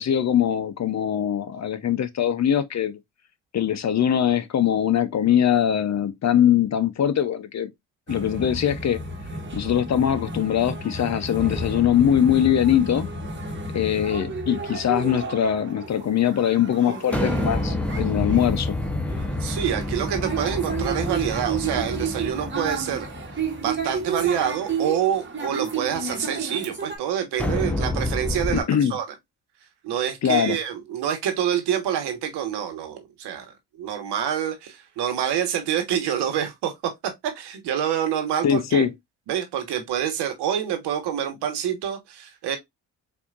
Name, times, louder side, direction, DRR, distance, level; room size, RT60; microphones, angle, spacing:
voice 1, 0.0-3.0 3.5-7.7 8.1-9.0 9.5-13.1 13.7-18.8 28.5-29.0 30.2-30.6 38.4-38.9, left 9 dB, 40° left, 0.6 m, -22 dB
sound 1, 8.1-27.0, right 4 dB, 30° right, 1.3 m, -32 dB
sound 2, 11.4-13.9 17.1-24.3 27.4-28.6, left 1 dB, 5° left, 0.8 m, -29 dB
voice 2, 19.4-23.1 23.6-29.0 29.8-38.9 39.3-42.6, right 9 dB, 75° right, 1.3 m, -27 dB
4.3 x 2.7 x 2.4 m
supercardioid pair, 70°, 40 cm